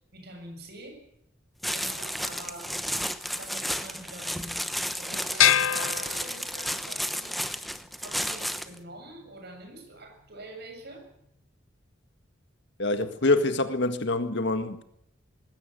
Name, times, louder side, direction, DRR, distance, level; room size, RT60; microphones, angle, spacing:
voice 1, 0.1-1.0 1.7-7.5 8.0-11.1, right 2 dB, 55° right, 7.3 m, -45 dB
sound 1, 1.6-8.8, equal, ahead, 1.0 m, -32 dB
sound 2, 5.4-6.9, left 10 dB, 80° left, 0.9 m, -24 dB
voice 2, 12.8-14.8, left 2 dB, 60° left, 1.8 m, -25 dB
20.0 x 17.0 x 9.2 m
head